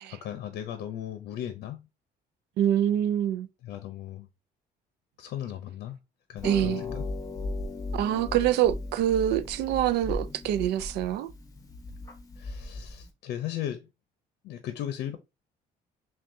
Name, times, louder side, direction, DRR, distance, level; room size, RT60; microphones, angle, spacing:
voice 1, 0.1-1.9 3.6-4.3 5.2-6.0 6.3-7.0 12.4-13.9 14.4-15.2, left 11 dB, 75° left, 0.6 m, -36 dB
voice 2, 2.6-3.5 6.4-6.8 7.9-11.3, right 11 dB, 80° right, 0.5 m, -25 dB
Harp, 6.4-13.1, left 2 dB, 20° left, 0.9 m, -37 dB
5.9 x 2.3 x 2.6 m
cardioid pair, 110°, 17 cm